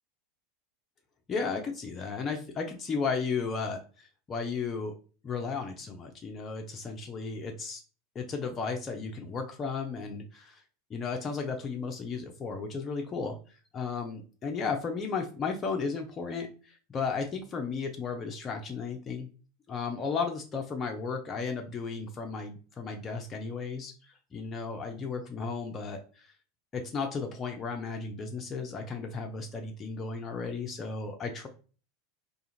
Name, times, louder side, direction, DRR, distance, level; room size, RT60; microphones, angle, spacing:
voice 1, 1.3-4.9 5.2-7.8 8.2-10.6 10.9-19.3 19.7-26.3 26.7-31.5, left 5 dB, 30° left, 3 dB, 0.4 m, -34 dB
2.4 x 2.4 x 2.8 m, 0.37 s
figure-of-eight pair, 85°, 0 cm